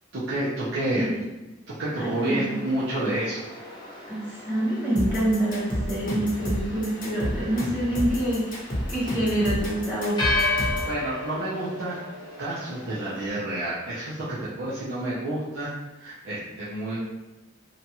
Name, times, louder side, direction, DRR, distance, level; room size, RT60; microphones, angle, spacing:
voice 1, 0.1-1.1 1.7-3.4 10.6-12.0 12.4-15.7 16.0-17.0, right 1 dB, 65° right, -9 dB, 0.6 m, -29 dB
voice 2, 0.8-1.1 2.0-2.6 4.1-10.2 10.6-10.8, right 1 dB, 10° right, -10 dB, 0.9 m, -26 dB
sound 1, 2.2-13.3, left 2 dB, 20° left, 0.6 m, -34 dB
sound 2, 5.0-10.9, equal, 45° left, 0.9 m, -30 dB
2.7 x 2.3 x 2.8 m, 1.1 s
head